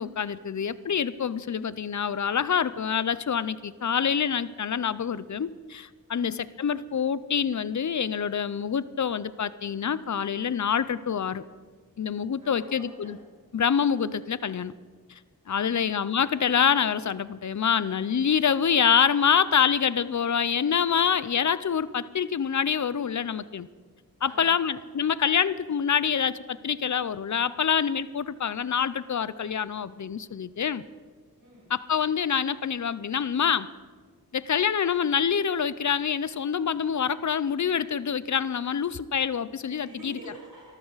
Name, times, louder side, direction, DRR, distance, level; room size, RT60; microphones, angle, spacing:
voice 1, 0.0-11.4 12.0-13.2 13.5-14.7 15.1-15.2 15.5-23.7 24.2-30.8 31.7-33.7 34.3-40.1, left 7 dB, 50° left, 17 dB, 0.6 m, -26 dB
voice 2, 12.4-13.2 15.4-15.9 21.0-21.1 24.2-24.7 31.4-31.7 39.8-40.8, right 1 dB, 60° right, -5 dB, 6.2 m, -47 dB
24.0 x 14.0 x 4.1 m, 1.5 s
wide cardioid pair, 65°, 36 cm